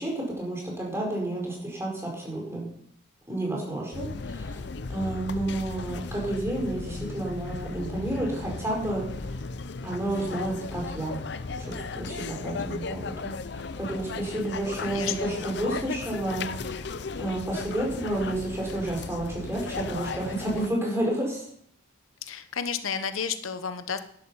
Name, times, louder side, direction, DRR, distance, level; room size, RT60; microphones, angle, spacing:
voice 1, 0.0-2.7 3.3-9.4 9.8-11.2 11.6-16.9 17.2-21.4, right 1 dB, 15° right, -2 dB, 4.6 m, -31 dB
sound 1, 3.9-20.7, left 4 dB, 55° left, 0.5 m, -36 dB
voice 2, 14.8-15.3 22.2-24.0, left 7 dB, 85° left, 10 dB, 1.0 m, -32 dB
12.0 x 11.5 x 5.7 m, 0.70 s
head